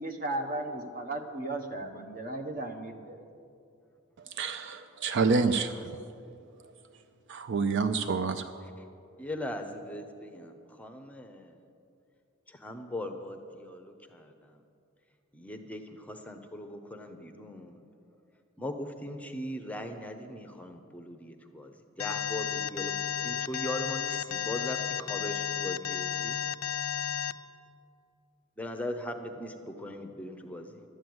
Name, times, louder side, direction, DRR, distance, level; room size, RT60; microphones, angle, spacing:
voice 1, 0.0-3.2, right 2 dB, 40° right, 6 dB, 1.1 m, -35 dB
voice 2, 4.4-5.7 7.3-8.4, right 4 dB, 60° right, 10 dB, 0.4 m, -27 dB
voice 3, 9.2-11.6 12.5-14.6 15.3-17.8 18.6-26.4 28.6-30.8, left 1 dB, 5° left, 6 dB, 0.7 m, -39 dB
Alarm, 22.0-27.3, left 10 dB, 90° left, 0.4 m, -32 dB
11.5 x 8.9 x 7.8 m, 2.5 s
head